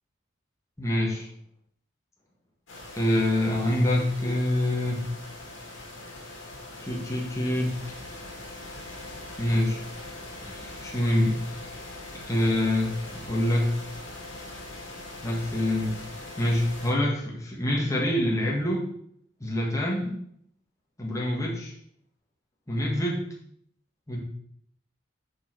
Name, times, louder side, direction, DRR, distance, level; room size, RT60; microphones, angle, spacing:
voice 1, 0.8-1.3 2.9-5.1 6.8-7.8 9.4-9.8 10.4-11.4 12.3-12.9 13.3-13.7 15.2-16.0 16.4-18.9 19.4-20.2 21.0-21.7 22.7-23.3 24.1-24.2, left 1 dB, 15° left, -3 dB, 1.4 m, -26 dB
sound 1, 2.7-16.9, left 2 dB, 70° left, 2.3 m, -42 dB
6.7 x 4.7 x 4.7 m, 0.67 s
head